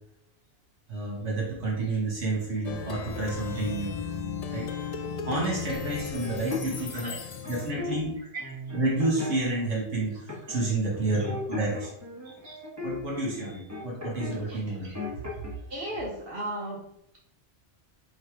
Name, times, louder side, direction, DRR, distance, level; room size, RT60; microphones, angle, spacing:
voice 1, 0.9-4.1 4.5-4.7 5.2-7.1 7.5-8.1 8.7-11.9 12.8-15.7, right 2 dB, 70° right, -3 dB, 1.6 m, -30 dB
Plucked string instrument, 2.6-8.0, left 6 dB, 70° left, 0.3 m, -36 dB
sound 1, 6.2-7.9 8.4-9.6 10.3-10.7 10.9-14.4 14.7-15.5, left 3 dB, 15° right, 1.0 m, -37 dB
voice 2, 12.2-12.6 14.4-14.6 15.7-16.8, right 1 dB, 55° right, -4 dB, 1.0 m, -36 dB
4.1 x 2.7 x 4.7 m, 0.78 s
omnidirectional pair, 1.2 m